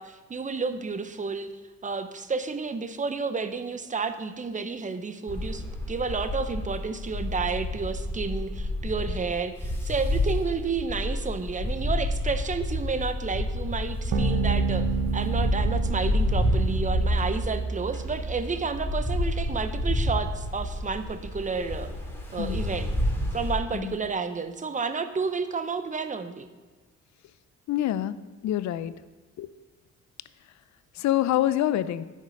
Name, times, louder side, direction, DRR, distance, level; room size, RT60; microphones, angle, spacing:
voice 1, 0.0-1.5 1.8-14.8 15.1-21.9 22.3-22.9 23.3-26.5, right 4 dB, 25° right, 10 dB, 0.7 m, -31 dB
sound 1, 5.3-23.6, left 1 dB, 10° left, 2.1 m, -29 dB
sound 2, 14.1-18.9, right 5 dB, 80° right, 1.2 m, -30 dB
voice 2, 27.7-28.2 28.4-29.0 29.4-29.5 31.0-32.0, left 13 dB, 65° left, 15 dB, 0.5 m, -26 dB
9.7 x 6.7 x 5.3 m, 1.3 s
cardioid pair, 90°, 30 cm